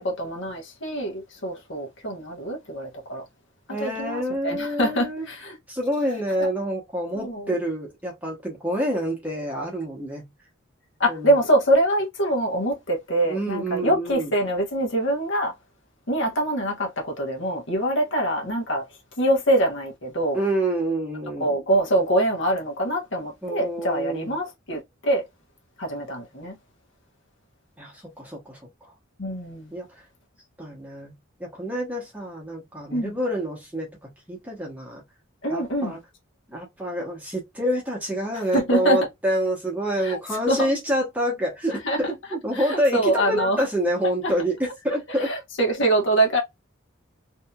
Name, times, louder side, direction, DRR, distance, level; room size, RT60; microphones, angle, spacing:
voice 1, 0.0-3.2 3.8-5.6 7.1-7.5 11.0-15.5 16.1-18.8 19.2-20.4 21.4-25.2 25.8-26.5 29.2-29.7 32.9-33.2 35.4-36.0 38.5-39.0 40.0-40.2 40.5-40.7 41.7-42.0 42.5-43.6 44.2-44.3 45.2-46.4, right 1 dB, 60° left, 0.9 m, -24 dB
voice 2, 3.7-5.3 5.7-10.3 11.1-11.4 13.2-14.3 20.3-21.6 23.4-24.3 27.8-28.9 29.7-29.9 30.6-31.1 31.4-35.0 35.5-36.0 36.5-45.3, equal, 5° right, 0.9 m, -27 dB
2.7 x 2.6 x 2.2 m
head